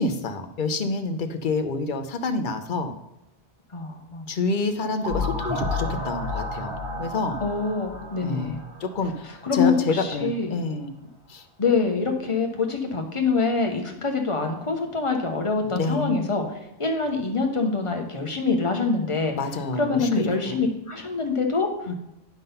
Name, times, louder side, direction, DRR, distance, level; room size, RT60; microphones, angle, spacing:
voice 1, 0.0-2.9 4.3-7.4 8.2-10.9 11.3-11.4 15.7-16.1 19.4-20.6 21.9-22.0, left 3 dB, 55° left, 8 dB, 0.8 m, -28 dB
voice 2, 3.7-4.3 7.4-8.6 9.2-10.6 11.6-16.4 16.8-19.3 19.7-21.7, left 4 dB, 30° left, 3 dB, 1.0 m, -25 dB
sound 1, 5.0-9.7, left 2 dB, 50° right, 2.3 m, -31 dB
10.5 x 3.8 x 5.4 m, 0.88 s
omnidirectional pair, 1.1 m